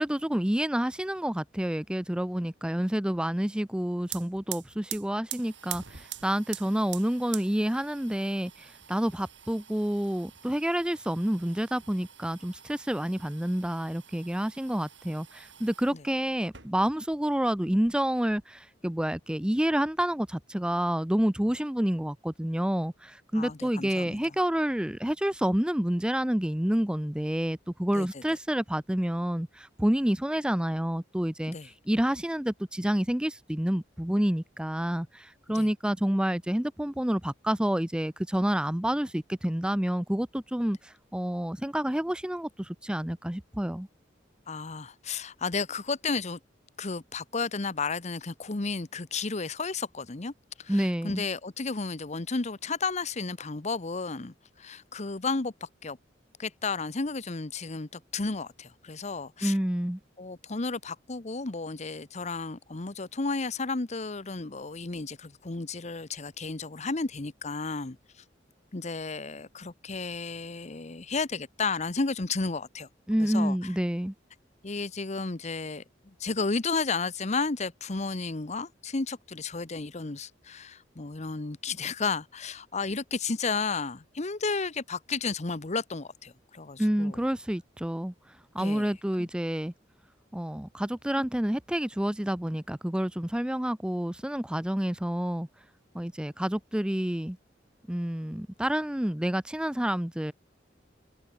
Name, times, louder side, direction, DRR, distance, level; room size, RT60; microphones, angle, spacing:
voice 1, 0.0-43.9 50.7-51.3 59.4-60.0 73.1-74.1 86.8-88.1 88.5-89.7 90.3-95.5 95.9-97.4 97.9-100.3, equal, 5° right, 0.5 m, -29 dB
sound 1, 3.7-3.8 4.0-16.0 16.4-17.2 17.4-18.4, right 12 dB, 80° right, 6.1 m, -45 dB
voice 2, 23.3-24.2 27.9-28.1 31.5-31.7 35.5-35.7 44.5-46.4 46.8-56.0 56.4-59.6 60.2-68.0 68.7-72.9 73.2-73.6 74.6-87.2 88.6-88.9 89.2-89.3, left 4 dB, 40° left, 1.0 m, -33 dB
head